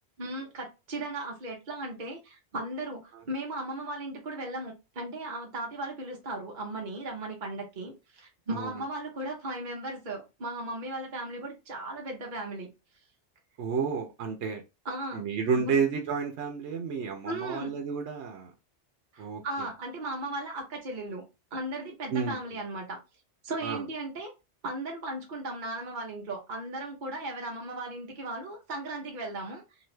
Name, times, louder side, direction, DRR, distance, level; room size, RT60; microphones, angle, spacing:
voice 1, 0.2-12.7 14.8-15.2 15.6-15.8 17.2-17.7 19.1-21.2 21.5-23.0 23.4-24.3 24.6-29.6, right 2 dB, 45° right, 1.0 m, -36 dB
voice 2, 13.6-14.6 15.1-18.5 19.2-19.7 22.1-22.4 23.6-23.8, right 5 dB, 75° right, 0.9 m, -31 dB
2.9 x 2.5 x 3.1 m
omnidirectional pair, 1.2 m